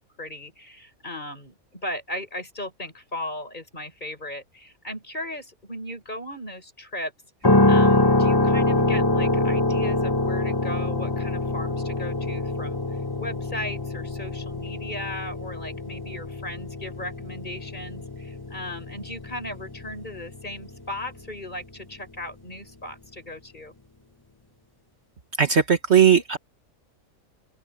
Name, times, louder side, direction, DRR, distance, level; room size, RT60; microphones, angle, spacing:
voice 1, 0.0-7.1 7.7-12.8 13.2-23.7, left 1 dB, 30° left, 7.4 m, -37 dB
sound 1, 7.4-21.4, left 2 dB, 15° left, 1.8 m, -25 dB
voice 2, 25.4-26.4, right 7 dB, 50° right, 1.5 m, -18 dB
open air
omnidirectional pair, 1.5 m